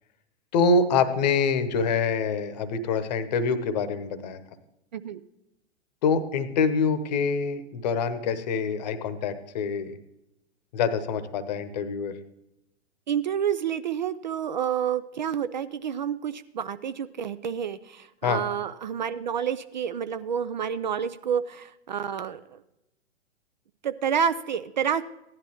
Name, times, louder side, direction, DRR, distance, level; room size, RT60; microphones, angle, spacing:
voice 1, 0.5-4.4 6.0-10.0 10.7-12.2 18.2-18.4, left 4 dB, 40° left, 11 dB, 1.0 m, -25 dB
voice 2, 4.9-5.2 13.1-22.6 23.8-25.0, right 8 dB, 40° right, 13 dB, 0.4 m, -29 dB
16.0 x 11.0 x 3.0 m, 0.89 s
figure-of-eight pair, 110°, 34 cm